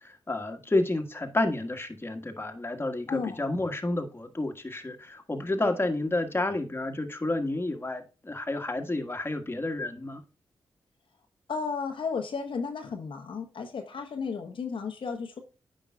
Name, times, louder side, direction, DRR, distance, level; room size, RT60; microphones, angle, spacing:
voice 1, 0.3-10.2, left 2 dB, 25° left, 1.5 m, -30 dB
voice 2, 3.1-3.4 11.5-15.4, left 5 dB, 65° left, 1.0 m, -33 dB
9.2 x 5.4 x 2.3 m
supercardioid pair, 40°, 9 cm